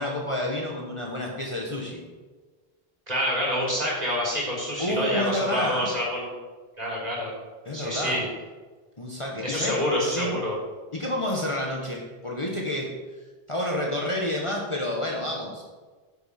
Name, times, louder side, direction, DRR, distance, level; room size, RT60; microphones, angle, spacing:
voice 1, 0.0-2.0 4.8-5.9 7.6-8.2 9.0-10.4 10.9-12.9 13.5-15.6, left 1 dB, 30° left, -1 dB, 1.3 m, -29 dB
voice 2, 3.1-6.3 6.8-7.3 7.7-8.3 9.4-10.6, equal, 40° right, -5 dB, 3.5 m, -27 dB
10.0 x 6.9 x 4.3 m, 1.4 s
omnidirectional pair, 1.0 m